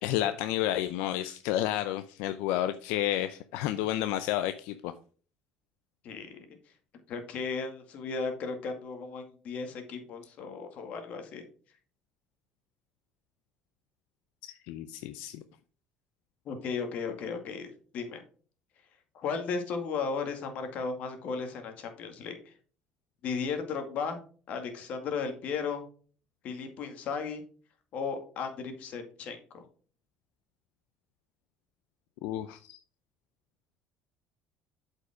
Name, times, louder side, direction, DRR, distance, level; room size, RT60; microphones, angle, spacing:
voice 1, 0.0-4.9 14.7-15.4 32.2-32.8, left 13 dB, 90° left, 10 dB, 0.5 m, -31 dB
voice 2, 6.0-6.4 7.1-11.4 16.5-17.7 17.9-18.2 19.1-22.5 23.2-24.2 24.5-25.8 26.4-27.4 27.9-29.6, left 5 dB, 60° left, 6 dB, 2.0 m, -35 dB
8.0 x 5.4 x 4.9 m, 0.42 s
cardioid pair, 120°, 3 cm